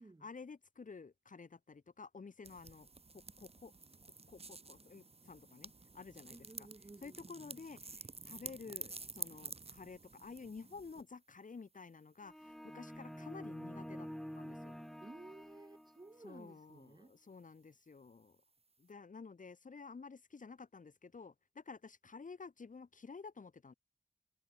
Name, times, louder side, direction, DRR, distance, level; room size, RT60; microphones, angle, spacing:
voice 1, 0.2-2.9 3.1-3.7 4.0-6.7 7.0-14.1 14.3-14.8 16.2-18.4 18.8-23.7, left 4 dB, 70° left, 1.4 m, -52 dB
sound 1, 2.4-11.0, right 3 dB, 45° right, 1.2 m, -50 dB
voice 2, 6.3-7.6 15.0-17.1, right 2 dB, 30° right, 1.6 m, -56 dB
sound 2, 12.2-16.2, equal, ahead, 0.8 m, -48 dB
wide cardioid pair, 80°, 14 cm